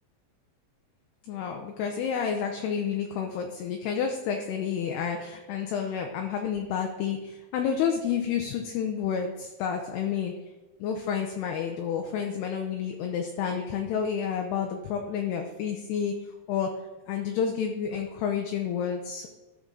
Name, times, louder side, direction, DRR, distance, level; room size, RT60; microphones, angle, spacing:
voice 1, 1.3-10.3 10.8-16.1 16.5-16.7 17.1-19.3, left 7 dB, 80° left, 3 dB, 2.5 m, -30 dB
13.0 x 5.3 x 3.7 m, 1.1 s
omnidirectional pair, 5.2 m